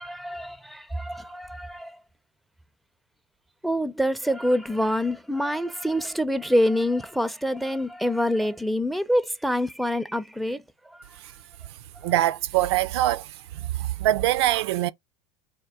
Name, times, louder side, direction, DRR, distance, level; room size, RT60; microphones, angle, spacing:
voice 1, 0.0-2.0 3.6-10.6 10.9-11.0, equal, ahead, 0.4 m, -26 dB
voice 2, 12.0-13.3 13.5-14.9, right 14 dB, 70° right, 0.4 m, -23 dB
4.3 x 2.2 x 3.5 m
hypercardioid pair, 85°, 14 cm